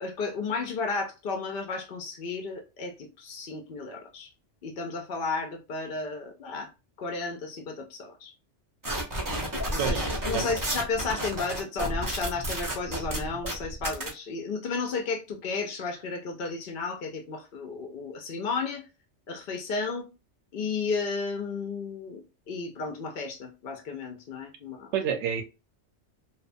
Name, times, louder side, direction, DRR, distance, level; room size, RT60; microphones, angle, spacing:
voice 1, 0.0-4.3 4.6-6.7 7.0-8.3 9.7-18.8 19.3-20.1 20.5-24.9, left 4 dB, 60° left, 0.6 m, -33 dB
sound 1, 8.8-14.1, right 1 dB, 20° right, 0.6 m, -31 dB
voice 2, 9.8-10.1 10.3-10.4 24.9-25.4, right 7 dB, 75° right, 0.9 m, -28 dB
2.7 x 2.2 x 2.5 m
omnidirectional pair, 1.2 m